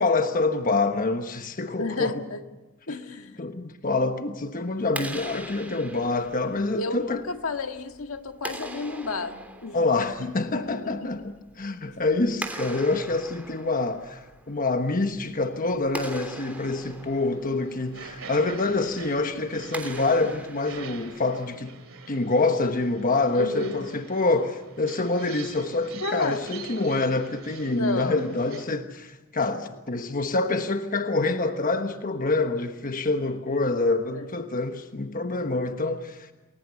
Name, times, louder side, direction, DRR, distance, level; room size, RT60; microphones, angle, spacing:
voice 1, 0.0-2.2 3.4-7.2 9.7-21.8 22.1-36.3, left 3 dB, 40° left, 1.2 m, -26 dB
voice 2, 1.8-2.4 2.9-3.4 6.7-10.3 10.6-10.9 23.3-23.8 26.0-26.4 27.6-28.2 34.1-34.3, left 3 dB, 75° left, 1.7 m, -31 dB
Clapping, 4.8-21.5, right 1 dB, 5° right, 3.1 m, -42 dB
sound 1, 16.5-28.6, right 6 dB, 70° right, 2.6 m, -45 dB
29.0 x 21.0 x 7.0 m
head